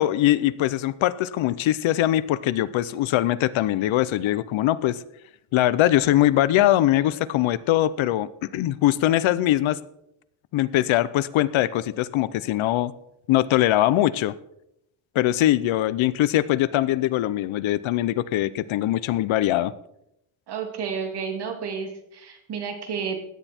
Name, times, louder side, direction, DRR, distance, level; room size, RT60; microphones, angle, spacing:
voice 1, 0.0-5.0 5.5-9.8 10.5-12.9 13.3-14.3 15.1-19.7, left 14 dB, 70° left, 16 dB, 0.8 m, -22 dB
voice 2, 20.5-23.2, right 6 dB, 50° right, 4 dB, 2.5 m, -31 dB
16.0 x 10.0 x 4.4 m, 0.80 s
cardioid pair, 165°, 49 cm